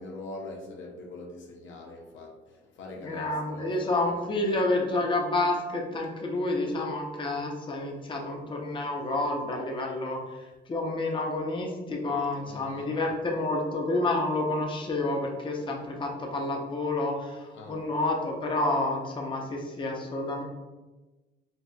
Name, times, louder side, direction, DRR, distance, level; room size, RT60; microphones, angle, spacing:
voice 1, 0.0-4.3 12.4-12.9 17.5-17.9, left 2 dB, 75° left, 0 dB, 0.6 m, -43 dB
voice 2, 3.0-10.2 10.7-20.4, left 2 dB, 25° left, 0 dB, 0.5 m, -29 dB
4.0 x 2.3 x 2.2 m, 1.2 s
cardioid pair, 90°, 20 cm